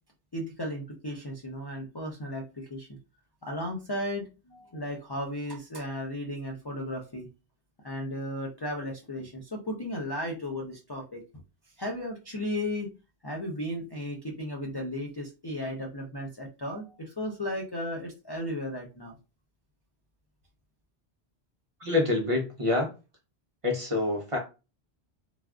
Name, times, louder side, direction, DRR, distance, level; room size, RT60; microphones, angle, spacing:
voice 1, 0.3-2.9 3.4-7.3 7.8-11.2 11.8-12.9 13.2-19.1, left 1 dB, 35° left, 0 dB, 0.4 m, -35 dB
voice 2, 21.8-22.9 23.6-24.4, left 3 dB, 35° right, 0 dB, 0.7 m, -26 dB
3.3 x 2.4 x 2.3 m, 0.29 s
omnidirectional pair, 1.1 m